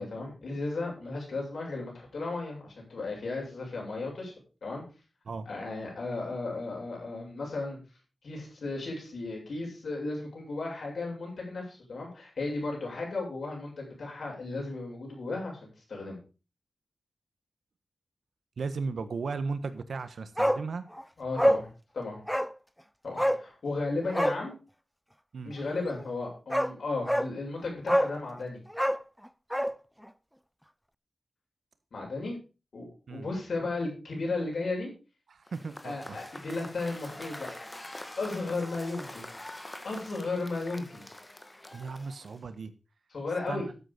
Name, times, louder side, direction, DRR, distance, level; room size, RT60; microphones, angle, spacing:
voice 1, 0.0-4.3 4.6-4.8 5.5-7.8 8.2-16.2 21.2-21.7 21.9-22.2 23.0-24.6 25.4-28.6 31.9-32.4 32.7-34.9 35.8-37.5 38.2-39.4 39.8-41.1 43.1-43.7, left 3 dB, 80° left, -1 dB, 7.7 m, -35 dB
voice 2, 18.6-20.9 25.3-25.5 33.1-33.3 35.3-36.2 41.7-42.7 43.5-43.6, right 4 dB, 85° right, 12 dB, 1.3 m, -36 dB
Bark, 20.4-20.6 20.9-21.0 21.4-21.7 22.3-22.5 23.2-23.4 24.1-24.4 26.0-26.1 26.5-26.7 27.1-27.3 27.9-28.2 28.7-29.8 30.0-30.1, equal, ahead, 0.5 m, -25 dB
Cheering / Applause / Crowd, 35.5-42.5, left 1 dB, 20° left, 1.6 m, -45 dB
12.5 x 8.2 x 5.2 m, 0.33 s
wide cardioid pair, 85°, 0 cm